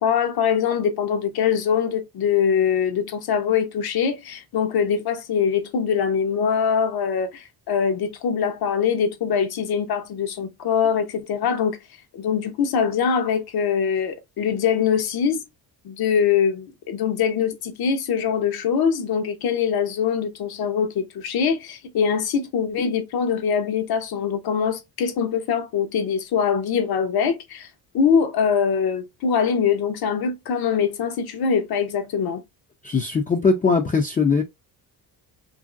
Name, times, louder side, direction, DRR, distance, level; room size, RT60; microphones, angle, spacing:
voice 1, 0.0-11.8 12.1-15.4 15.8-27.7 27.9-32.4, left 7 dB, 65° left, 0.8 m, -23 dB
voice 2, 32.8-34.4, left 4 dB, 20° left, 0.4 m, -20 dB
2.9 x 2.6 x 2.4 m
cardioid pair, 120°, 40 cm